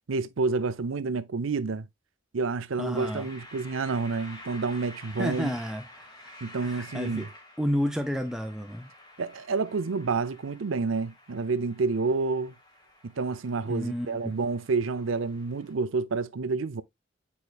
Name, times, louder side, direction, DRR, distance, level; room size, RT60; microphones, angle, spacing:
voice 1, 0.1-1.9 2.3-5.5 6.4-7.3 9.2-12.5 13.0-16.8, right 4 dB, 85° right, 0.6 m, -29 dB
voice 2, 2.8-3.3 5.2-6.3 6.6-7.3 7.6-8.9 13.7-14.4, equal, 5° right, 0.5 m, -31 dB
sound 1, 2.9-15.7, left 1 dB, 20° left, 1.3 m, -50 dB
8.7 x 4.7 x 2.3 m
head